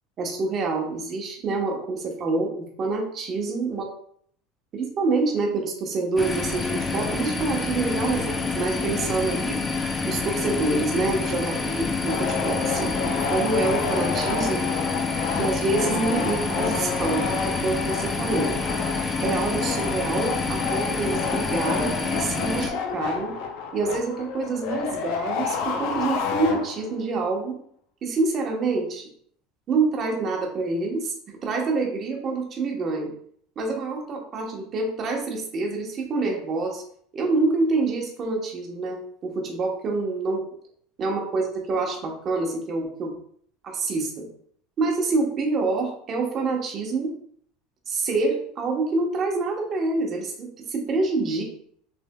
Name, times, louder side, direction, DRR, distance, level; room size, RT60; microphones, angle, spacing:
voice 1, 0.2-3.9 4.7-9.6 10.0-14.6 15.3-18.6 19.2-23.3 23.7-27.5 28.0-29.1 29.7-31.1 31.4-33.1 33.6-36.8 37.1-40.4 41.0-43.1 43.6-44.3 44.8-47.1 47.9-51.4, right 3 dB, 30° right, 0 dB, 1.0 m, -26 dB
sound 1, 6.2-22.7, left 4 dB, 15° left, 0.4 m, -28 dB
sound 2, 12.1-27.0, left 5 dB, 60° left, 0.6 m, -30 dB
6.3 x 3.4 x 2.2 m, 0.63 s
cardioid pair, 165°, 0 cm